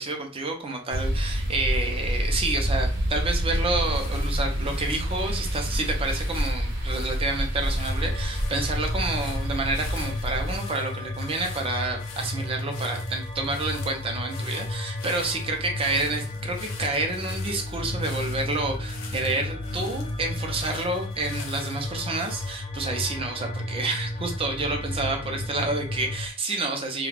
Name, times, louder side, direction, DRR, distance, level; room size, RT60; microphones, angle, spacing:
voice 1, 0.0-27.1, right 2 dB, 25° right, 3 dB, 0.5 m, -29 dB
sound 1, 0.9-10.6, equal, 60° right, 0.9 m, -28 dB
sound 2, 3.7-22.5, left 5 dB, 75° left, 0.6 m, -46 dB
sound 3, 7.6-26.3, left 1 dB, 25° left, 0.3 m, -33 dB
2.4 x 2.3 x 3.3 m, 0.40 s
head